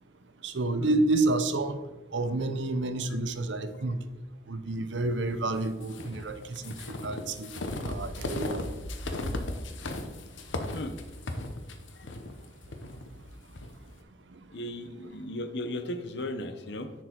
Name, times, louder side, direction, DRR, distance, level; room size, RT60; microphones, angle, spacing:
voice 1, 0.4-1.8 2.1-4.0 4.5-7.5 7.9-8.6, right 2 dB, 75° right, 10 dB, 0.7 m, -29 dB
sound 1, 5.8-13.7, left 1 dB, 90° left, 0.9 m, -36 dB
voice 2, 14.5-16.9, left 1 dB, 60° left, 9 dB, 0.7 m, -36 dB
10.0 x 4.6 x 4.5 m, 1.1 s
head